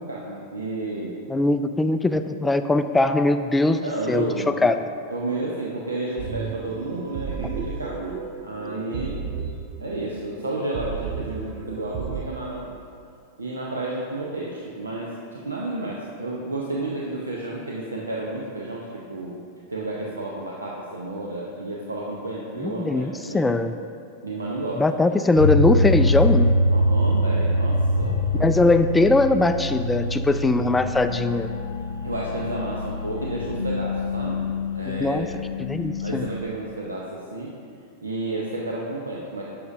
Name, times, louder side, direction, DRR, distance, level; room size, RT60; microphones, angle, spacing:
voice 1, 0.0-1.2 3.8-4.6 5.1-8.1 8.4-9.2 9.8-12.7 13.4-19.4 19.7-23.4 24.2-24.8 25.1-25.2 26.7-28.6 32.0-34.4 34.7-35.2 36.0-37.5 38.0-39.4, right 2 dB, 75° right, -4 dB, 0.8 m, -31 dB
voice 2, 1.3-4.8 22.6-23.7 24.8-26.6 28.4-31.5 34.9-35.3 35.7-36.2, left 2 dB, 10° left, 9 dB, 0.3 m, -21 dB
sound 1, 6.2-12.2, right 6 dB, 40° right, 0.6 m, -33 dB
sound 2, 25.4-36.3, left 1 dB, 70° left, 0.5 m, -24 dB
10.5 x 6.7 x 2.6 m, 2.3 s
figure-of-eight pair, 90°, 0 cm